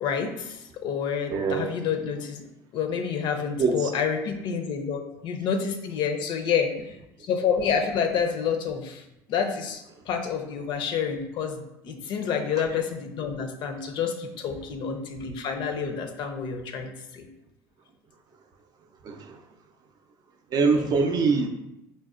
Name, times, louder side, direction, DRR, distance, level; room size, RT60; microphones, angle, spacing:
voice 1, 0.0-2.5 2.7-6.9 7.2-9.0 9.3-17.3 20.7-20.9, left 6 dB, 60° left, 6 dB, 0.4 m, -28 dB
voice 2, 1.3-1.7 3.6-3.9 19.0-19.4 20.5-21.5, right 4 dB, 45° right, 5 dB, 0.4 m, -23 dB
3.9 x 2.1 x 2.4 m, 0.88 s
supercardioid pair, 85°, 9 cm